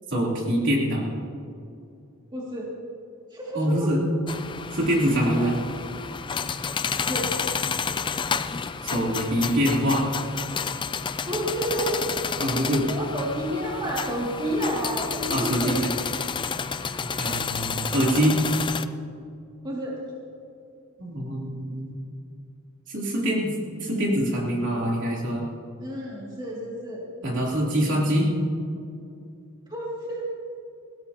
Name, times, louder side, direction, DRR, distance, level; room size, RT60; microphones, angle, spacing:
voice 1, 0.1-1.1 3.5-4.0 4.7-5.5 8.8-10.0 12.4-12.8 15.3-15.9 17.2-18.4 21.0-21.9 22.9-23.5 23.8-25.4 27.2-28.3, equal, 55° right, -3 dB, 3.3 m, -24 dB
voice 2, 2.3-2.7 3.3-3.9 5.3-5.6 7.1-7.3 11.3-12.0 12.5-15.8 19.6-20.0 25.8-27.0 29.7-30.3, right 1 dB, 20° right, -5 dB, 2.4 m, -30 dB
sound 1, 4.3-18.8, left 6 dB, 20° left, 0.4 m, -30 dB
21.0 x 17.0 x 2.9 m, 2.5 s
head